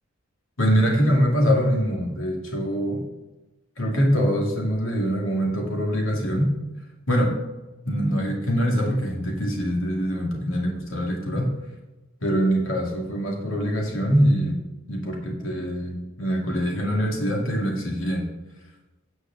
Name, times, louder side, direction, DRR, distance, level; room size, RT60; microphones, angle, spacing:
voice 1, 0.6-3.0 3.8-6.5 7.1-7.3 7.8-11.5 12.2-14.6 14.9-18.3, equal, 80° left, 0 dB, 2.3 m, -23 dB
9.8 x 4.8 x 6.9 m, 1.1 s
head